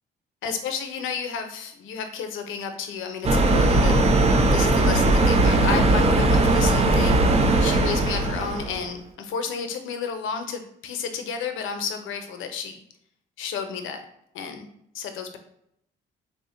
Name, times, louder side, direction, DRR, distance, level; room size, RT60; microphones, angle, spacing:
voice 1, 0.4-12.8 13.4-14.0 14.3-14.7 14.9-15.4, left 6 dB, 80° left, 6 dB, 0.6 m, -32 dB
sound 1, 3.2-8.8, right 2 dB, 30° right, 0.6 m, -19 dB
3.7 x 2.1 x 3.7 m, 0.75 s
cardioid pair, 90°, 20 cm